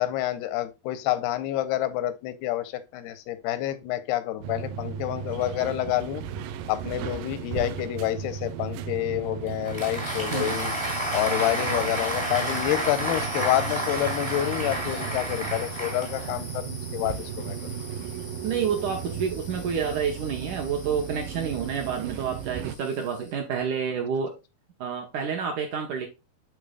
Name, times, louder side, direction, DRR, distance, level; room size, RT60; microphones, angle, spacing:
voice 1, 0.0-6.2 6.7-10.7 11.1-17.6, left 14 dB, 90° left, 2.6 m, -28 dB
sound 1, 4.4-22.8, right 8 dB, 90° right, 2.0 m, -36 dB
Applause, 9.5-16.6, right 1 dB, 45° right, 0.4 m, -30 dB
sound 2, 9.9-23.4, left 3 dB, 70° left, 0.7 m, -44 dB
voice 2, 18.4-24.3 24.8-26.1, right 7 dB, 70° right, 1.9 m, -29 dB
11.0 x 4.0 x 2.2 m
omnidirectional pair, 4.6 m